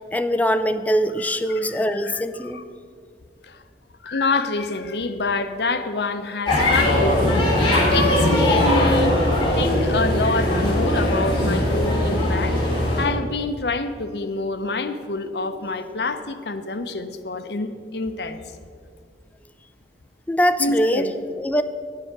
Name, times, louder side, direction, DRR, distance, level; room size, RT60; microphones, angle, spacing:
voice 1, 0.1-2.6 20.3-21.1 21.4-21.6, equal, 10° left, 10 dB, 0.3 m, -22 dB
voice 2, 1.2-2.6 3.5-3.6 4.0-7.5 7.9-9.2 9.5-12.6 13.0-18.4 20.6-21.1, left 3 dB, 65° left, 9 dB, 0.7 m, -27 dB
sound 1, 6.5-13.0, left 1 dB, 30° left, 3.2 m, -20 dB
9.7 x 7.7 x 6.0 m, 2.1 s
head